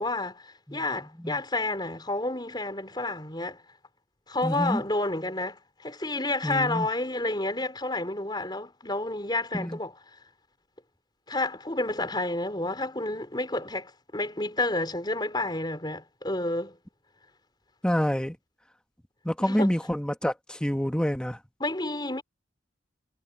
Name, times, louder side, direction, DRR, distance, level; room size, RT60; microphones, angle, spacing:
voice 1, 0.0-3.6 4.3-9.9 11.3-16.8 19.5-19.7 21.6-22.2, left 2 dB, 25° left, 4.6 m, -30 dB
voice 2, 4.4-4.8 6.4-6.9 9.5-9.8 17.8-18.4 19.2-21.4, equal, 5° left, 1.1 m, -27 dB
head